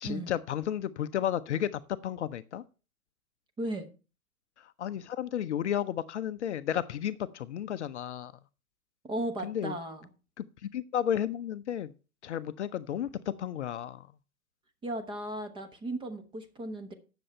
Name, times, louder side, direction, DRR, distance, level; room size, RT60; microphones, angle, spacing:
voice 1, 0.0-2.6 4.6-8.3 9.4-9.7 10.4-11.9 12.2-14.1, left 10 dB, 55° left, 0.6 m, -33 dB
voice 2, 9.0-10.1 14.8-16.9, right 1 dB, 10° right, 1.1 m, -36 dB
9.9 x 6.9 x 5.3 m
hypercardioid pair, 125°, 43 cm